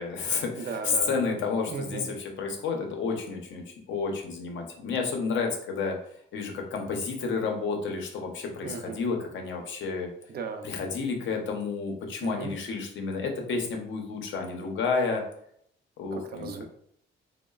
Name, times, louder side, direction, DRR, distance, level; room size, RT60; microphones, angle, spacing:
voice 1, 0.0-6.0 6.3-10.1 10.6-15.2 16.0-16.5, left 4 dB, 70° left, 2 dB, 0.6 m, -30 dB
voice 2, 0.6-1.4 1.7-2.1 8.6-9.0 10.3-10.7 12.2-12.5 16.1-16.6, right 5 dB, 50° right, 6 dB, 0.4 m, -36 dB
2.9 x 2.0 x 2.2 m, 0.68 s
cardioid pair, 90°, 20 cm